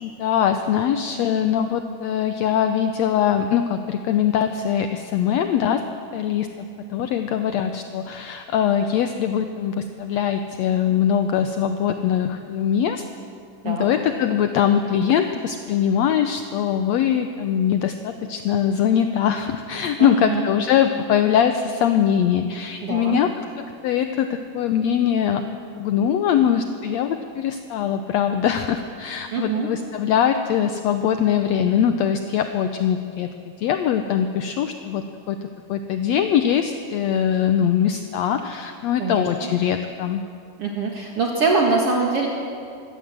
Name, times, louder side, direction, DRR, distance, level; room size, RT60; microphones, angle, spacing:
voice 1, 0.0-5.8 6.1-13.0 13.6-25.4 25.8-33.3 33.6-35.4 35.7-40.2, left 9 dB, 75° left, 7 dB, 1.7 m, -22 dB
voice 2, 20.0-20.4 22.8-23.2 29.3-29.7 39.0-39.5 40.6-42.3, right 4 dB, 50° right, 0 dB, 2.5 m, -23 dB
23.5 x 17.5 x 7.7 m, 2.3 s
omnidirectional pair, 3.7 m